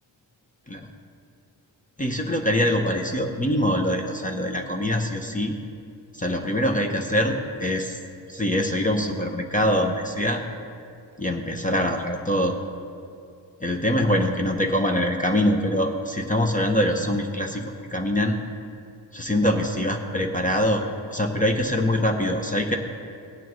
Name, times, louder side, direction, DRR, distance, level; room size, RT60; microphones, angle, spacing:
voice 1, 2.0-5.5 6.1-8.0 8.3-10.4 11.2-12.5 13.6-17.6 17.9-18.3 19.1-20.8 21.1-22.8, left 1 dB, 15° left, 3 dB, 0.8 m, -23 dB
16.5 x 9.6 x 3.1 m, 2.5 s
wide cardioid pair, 130°, 46 cm